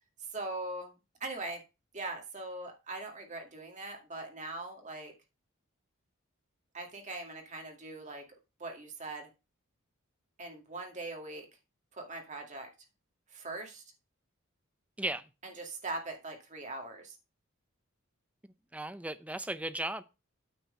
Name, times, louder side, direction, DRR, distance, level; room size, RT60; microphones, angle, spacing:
voice 1, 0.3-0.9 1.2-1.6 1.9-5.1 6.7-8.2 8.6-9.3 10.4-11.5 11.9-12.7 13.3-13.8 15.4-17.2, right 2 dB, 35° right, 2.2 m, -41 dB
voice 2, 15.0-15.3 18.7-20.0, right 1 dB, 5° right, 0.6 m, -36 dB
9.1 x 4.6 x 6.7 m
head